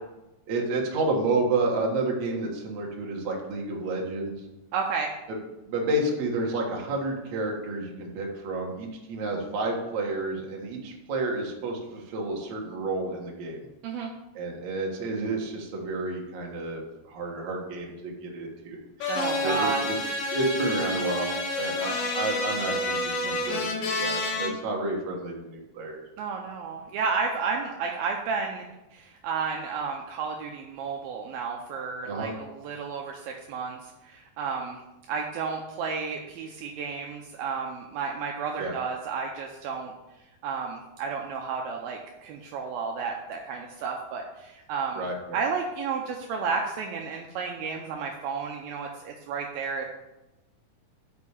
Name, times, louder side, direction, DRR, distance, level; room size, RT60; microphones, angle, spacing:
voice 1, 0.5-4.4 5.7-13.6 14.3-19.1 19.4-19.9 20.3-26.0 32.0-32.3 38.6-38.8 45.0-45.4, right 2 dB, 55° right, -1 dB, 2.4 m, -30 dB
voice 2, 4.7-5.1 13.8-14.1 19.1-19.8 26.2-28.6 28.9-34.8 35.1-39.9 40.4-45.0 45.3-49.9, right 5 dB, 80° right, 1 dB, 2.4 m, -32 dB
sound 1, 19.0-24.5, left 2 dB, 65° left, 2.7 m, -29 dB
6.5 x 6.1 x 7.1 m, 0.99 s
omnidirectional pair, 4.6 m